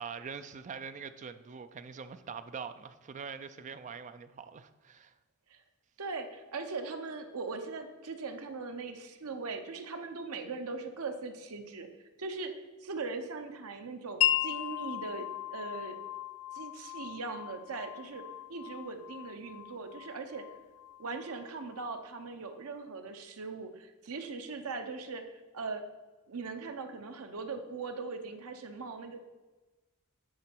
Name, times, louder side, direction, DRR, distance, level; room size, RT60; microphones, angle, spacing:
voice 1, 0.0-5.1, right 6 dB, 35° right, 0.3 m, -43 dB
voice 2, 6.0-11.9 12.2-12.5 12.8-16.0 16.5-18.2 18.5-20.4 21.0-25.8 26.3-29.2, right 4 dB, 75° right, 0.7 m, -40 dB
Wind chime, 14.2-21.8, left 12 dB, 70° left, 0.4 m, -36 dB
9.5 x 3.9 x 4.5 m
head